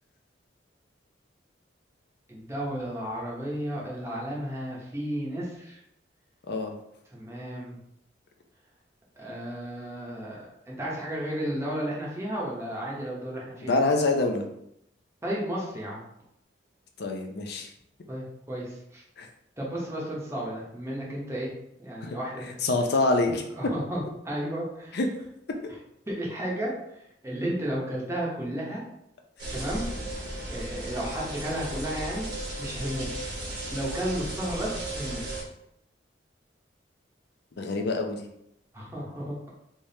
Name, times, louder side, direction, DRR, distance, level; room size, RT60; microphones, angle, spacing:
voice 1, 2.3-5.8 7.1-7.8 9.2-13.8 15.2-16.0 18.1-19.0 19.6-21.5 21.8-22.5 23.6-25.0 26.1-26.7 27.2-28.8 29.5-29.8 30.5-32.3 32.6-33.3 33.7-35.2 38.7-39.5, right 1 dB, 15° right, -5 dB, 0.9 m, -33 dB
voice 2, 13.6-14.4 17.0-17.7 19.2-19.3 22.0-22.2 22.6-23.4 24.9-25.1 29.4-29.5 37.6-38.3, left 3 dB, 60° left, 3 dB, 0.5 m, -26 dB
sound 1, 29.4-35.4, right 1 dB, 60° right, 1.2 m, -35 dB
3.5 x 3.1 x 2.7 m, 0.79 s
head